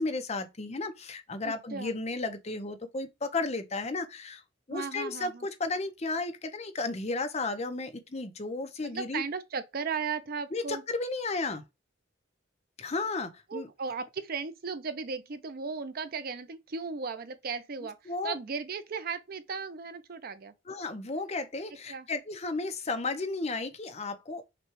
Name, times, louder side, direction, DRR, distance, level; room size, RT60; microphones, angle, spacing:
voice 1, 0.0-4.4 4.7-9.2 10.5-11.6 12.8-13.7 18.1-18.4 20.7-24.4, left 3 dB, 30° left, 0.7 m, -33 dB
voice 2, 1.4-1.9 4.7-5.5 8.8-10.8 13.5-18.0 18.2-20.5 21.9-22.1, right 5 dB, 45° right, 0.5 m, -36 dB
6.0 x 2.3 x 3.0 m
head